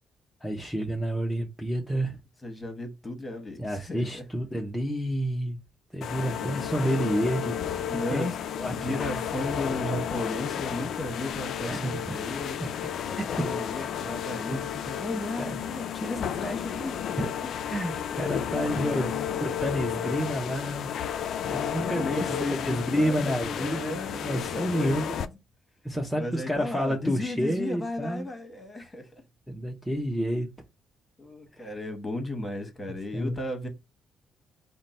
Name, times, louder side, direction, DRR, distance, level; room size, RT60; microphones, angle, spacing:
voice 1, 0.4-2.2 3.6-5.6 5.9-7.6 8.1-8.3 8.6-8.9 11.6-12.2 13.1-13.3 13.7-13.9 14.5-14.6 15.4-15.5 17.2-17.3 17.7-20.9 21.5-25.2 25.8-28.3 29.5-30.5 31.5-31.7 33.1-33.4, equal, ahead, 0.7 m, -29 dB
voice 2, 2.4-4.2 6.4-6.7 7.9-8.4 8.7-12.6 13.3-17.6 18.1-19.5 21.6-25.3 26.2-29.2 31.2-33.7, left 1 dB, 20° left, 1.2 m, -35 dB
sound 1, 6.0-25.3, left 9 dB, 70° left, 0.3 m, -32 dB
3.7 x 2.2 x 4.2 m
cardioid pair, 90°, 0 cm